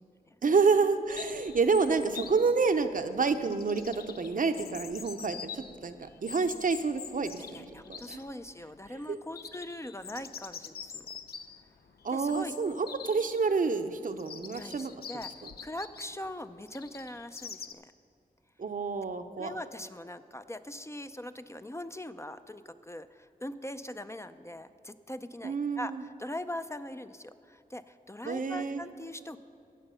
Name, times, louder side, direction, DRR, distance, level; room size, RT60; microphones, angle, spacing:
voice 1, 0.4-8.2 8.9-9.2 12.0-14.9 15.4-15.5 18.6-19.5 25.4-26.0 28.2-28.8, right 4 dB, 60° right, 8 dB, 0.7 m, -29 dB
Chirp tweet, 1.1-17.7, left 7 dB, 90° left, 0.5 m, -46 dB
voice 2, 7.4-11.1 12.1-12.5 14.4-15.3 15.6-17.9 19.4-29.4, left 1 dB, 20° left, 10 dB, 0.5 m, -41 dB
17.0 x 6.8 x 5.6 m, 2.5 s
cardioid pair, 55°, 16 cm